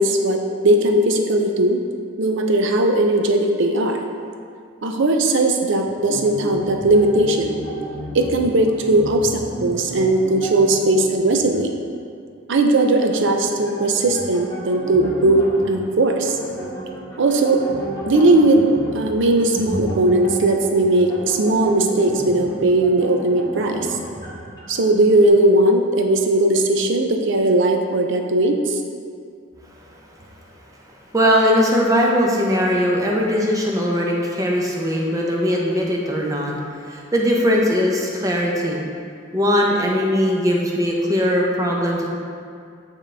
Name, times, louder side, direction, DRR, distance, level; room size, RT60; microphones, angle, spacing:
voice 1, 0.0-1.8 2.2-4.1 4.8-7.6 8.1-11.7 12.5-16.4 17.2-17.6 18.1-18.7 18.9-24.0 24.7-28.8, right 2 dB, 60° right, 4 dB, 0.5 m, -18 dB
sound 1, 5.8-11.6 11.9-12.0 13.0-25.3, equal, 20° left, 1.2 m, -32 dB
voice 2, 31.1-36.5 36.9-38.8 39.3-42.1, equal, 15° right, -2 dB, 0.7 m, -20 dB
8.8 x 3.7 x 3.4 m, 2.3 s
head